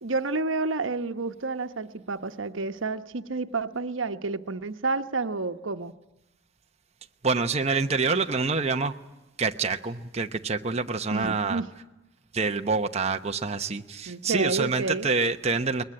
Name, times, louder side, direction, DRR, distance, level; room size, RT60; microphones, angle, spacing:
voice 1, 0.0-5.9 11.1-11.7 14.1-15.1, right 3 dB, 90° right, 9 dB, 1.1 m, -30 dB
voice 2, 7.2-8.9 9.4-11.6 12.3-15.8, right 4 dB, 35° right, 6 dB, 0.9 m, -26 dB
21.0 x 20.5 x 9.9 m, 1.0 s
head